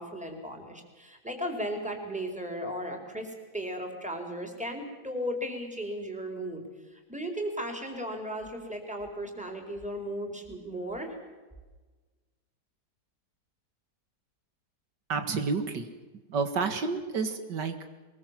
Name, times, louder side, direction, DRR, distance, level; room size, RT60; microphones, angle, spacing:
voice 1, 0.0-6.6 6.9-11.2, equal, 5° right, 3 dB, 4.3 m, -36 dB
voice 2, 15.1-15.9 16.3-17.9, right 4 dB, 90° right, 7 dB, 2.5 m, -30 dB
23.0 x 22.0 x 7.5 m, 1.3 s
omnidirectional pair, 1.8 m